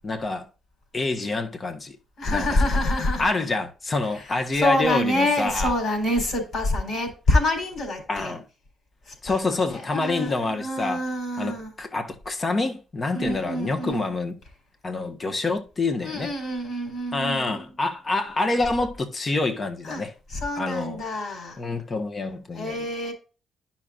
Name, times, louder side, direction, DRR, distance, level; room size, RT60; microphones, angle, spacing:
voice 1, 0.0-0.5 0.9-2.0 2.3-2.8 3.2-5.7 8.1-8.4 9.2-11.0 11.4-14.3 14.8-16.3 17.1-20.1 20.6-21.0 21.6-22.8, left 3 dB, 35° left, 1.2 m, -27 dB
voice 2, 2.2-3.3 4.1-8.3 9.1-11.7 13.1-14.1 16.0-17.7 19.8-20.0 20.3-21.6 22.5-23.1, left 1 dB, 60° left, 3.7 m, -26 dB
10.5 x 5.8 x 2.4 m
cardioid pair, 90°, 0 cm